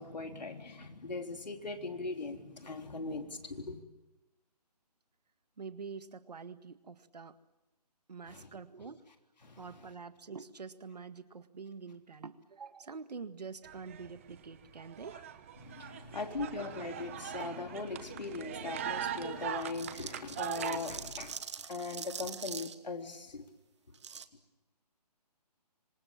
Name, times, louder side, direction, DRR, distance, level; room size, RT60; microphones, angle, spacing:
voice 1, 0.0-3.8 8.3-8.5 9.4-9.9 15.0-15.2 15.6-21.4 21.7-23.4, left 3 dB, 85° left, 4 dB, 3.9 m, -40 dB
voice 2, 5.6-7.4 8.1-9.0 9.6-15.2 16.4-16.5, right 5 dB, 75° right, 11 dB, 1.9 m, -46 dB
sound 1, 13.6-14.4 14.6-20.8, right 10 dB, 20° right, 1.0 m, -41 dB
sound 2, 19.6-22.7 23.9-24.3, right 6 dB, 45° right, 1.3 m, -43 dB
26.5 x 26.0 x 7.3 m, 1.0 s
hypercardioid pair, 170°, 21 cm